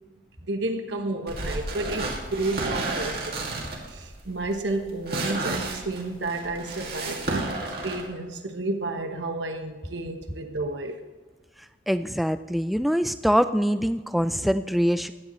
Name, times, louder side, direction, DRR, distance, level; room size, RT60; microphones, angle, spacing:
voice 1, 0.5-3.4 3.7-11.0, right 2 dB, 75° right, 5 dB, 1.1 m, -31 dB
sound 1, 1.3-8.0, right 2 dB, 55° right, 2.2 m, -32 dB
voice 2, 11.9-15.1, equal, ahead, 11 dB, 0.3 m, -24 dB
15.0 x 10.0 x 3.1 m, 1.3 s
head